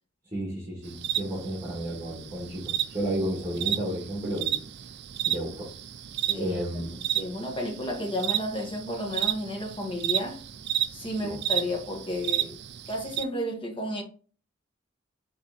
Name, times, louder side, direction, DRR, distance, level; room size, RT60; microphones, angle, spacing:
voice 1, 0.3-4.6 5.3-5.7 6.4-7.0 11.2-11.4, right 1 dB, 15° right, 1.6 m, -32 dB
sound 1, 0.8-13.2, right 11 dB, 60° right, 0.4 m, -32 dB
voice 2, 6.3-10.4 10.9-12.6 12.9-14.0, left 1 dB, 25° left, 1.1 m, -32 dB
4.2 x 3.2 x 3.8 m
head